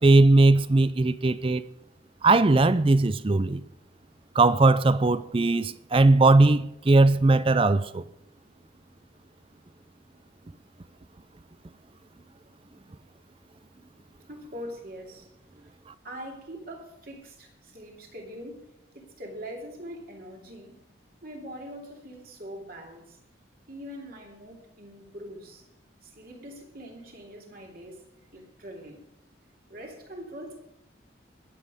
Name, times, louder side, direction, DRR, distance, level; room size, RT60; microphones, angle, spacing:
voice 1, 0.0-1.6 2.2-3.6 4.4-8.0, right 2 dB, 30° right, 0.4 m, -19 dB
voice 2, 14.3-15.3 16.0-18.7 18.9-20.8 21.2-23.2 23.7-25.6 26.0-28.0 28.3-29.0 29.7-30.6, equal, 50° right, 2.8 m, -42 dB
21.0 x 7.5 x 5.0 m
head